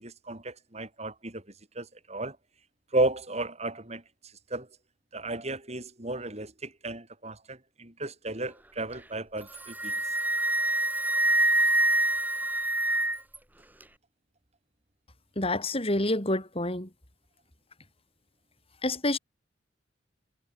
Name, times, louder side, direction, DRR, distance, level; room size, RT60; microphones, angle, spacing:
voice 1, 0.0-1.4 1.7-2.4 2.9-4.0 4.5-4.7 5.1-9.9, right 2 dB, 35° right, 6.6 m, -33 dB
Wind instrument woodwind instrument, 9.4-13.4, right 1 dB, 10° right, 3.0 m, -25 dB
voice 2, 15.4-16.9 18.8-19.2, left 1 dB, 30° left, 4.7 m, -28 dB
head